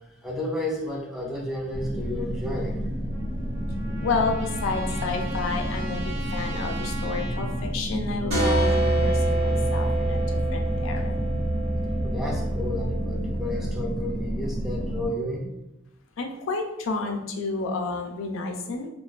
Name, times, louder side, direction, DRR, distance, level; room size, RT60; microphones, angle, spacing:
voice 1, 0.0-2.8 12.0-15.5, left 1 dB, ahead, -2 dB, 0.4 m, -32 dB
sound 1, 1.7-15.1, equal, 40° right, 1.0 m, -30 dB
Trumpet, 3.1-7.6, right 2 dB, 65° right, 0.4 m, -40 dB
voice 2, 3.8-11.4 16.2-18.9, left 3 dB, 75° left, 3 dB, 0.4 m, -30 dB
sound 2, 8.3-13.8, right 1 dB, 85° right, 1.0 m, -26 dB
2.4 x 2.2 x 2.3 m, 0.90 s
head